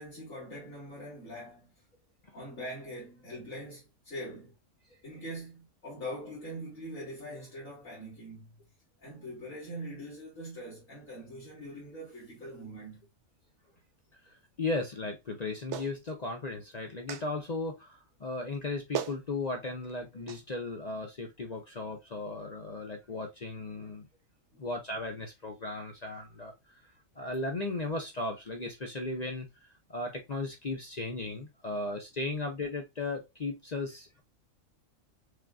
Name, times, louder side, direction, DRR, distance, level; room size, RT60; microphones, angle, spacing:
voice 1, 0.0-1.7 2.3-4.5 5.0-8.6 9.0-13.1 24.5-24.6, equal, 75° left, 2.9 m, -43 dB
voice 2, 14.2-24.1 24.6-26.5 27.2-34.2, left 2 dB, 45° left, 0.6 m, -36 dB
Clapping, 15.7-15.9 17.1-17.3 18.5-18.6 18.9-19.2 20.3-20.4, right 9 dB, 65° right, 0.9 m, -35 dB
6.4 x 2.5 x 2.3 m
omnidirectional pair, 1.4 m